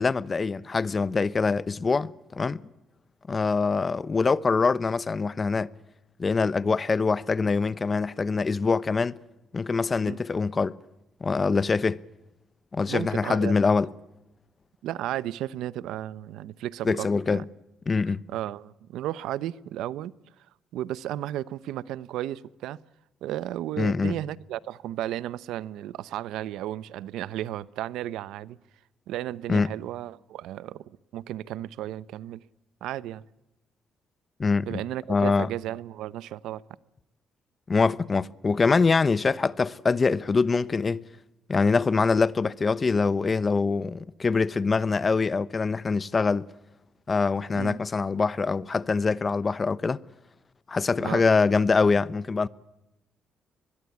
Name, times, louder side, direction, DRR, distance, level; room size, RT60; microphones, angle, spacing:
voice 1, 0.0-2.6 3.3-5.7 6.2-9.2 9.5-10.8 11.2-12.0 12.7-13.9 16.8-17.4 17.9-18.2 23.8-24.2 29.5-29.7 34.4-34.8 35.1-35.5 37.7-41.0 41.5-46.5 47.1-50.0 50.7-52.5, left 4 dB, 30° left, 0.9 m, -24 dB
voice 2, 12.9-13.5 14.8-17.4 18.3-20.1 20.7-22.8 23.2-28.6 29.1-30.8 31.1-32.4 32.8-33.2 34.7-36.6 47.5-47.8 51.0-51.2, right 13 dB, 85° right, 0.8 m, -34 dB
24.0 x 21.0 x 8.4 m
cardioid pair, 90°, 0 cm